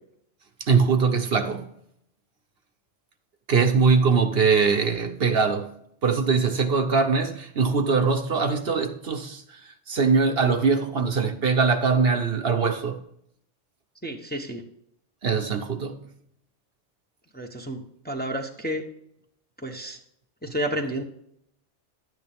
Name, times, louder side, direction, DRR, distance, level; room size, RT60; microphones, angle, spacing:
voice 1, 0.6-1.6 3.5-5.7 6.0-9.6 9.9-13.0 15.2-16.1, right 5 dB, 55° right, 1.0 m, -22 dB
voice 2, 14.0-14.6 17.3-18.8 19.6-20.0 20.4-21.0, equal, 10° left, 0.9 m, -31 dB
11.5 x 9.5 x 3.5 m
omnidirectional pair, 1.2 m